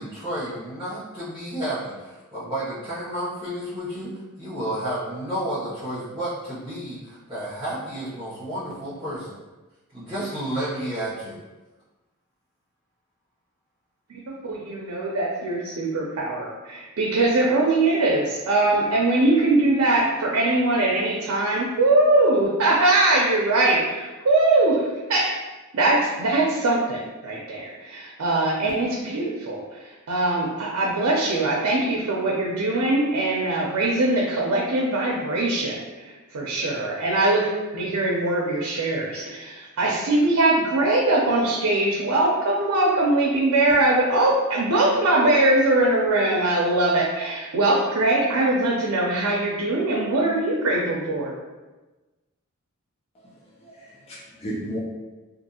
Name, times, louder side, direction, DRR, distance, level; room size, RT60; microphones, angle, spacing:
voice 1, 0.0-9.4 9.9-11.4, right 1 dB, 20° right, -13 dB, 0.9 m, -31 dB
voice 2, 14.4-25.3 25.7-29.8 30.1-37.5 37.7-51.3, right 2 dB, 80° right, -3 dB, 0.5 m, -22 dB
voice 3, 53.1-54.8, equal, 30° left, -6 dB, 0.4 m, -35 dB
2.6 x 2.5 x 2.7 m, 1.2 s
head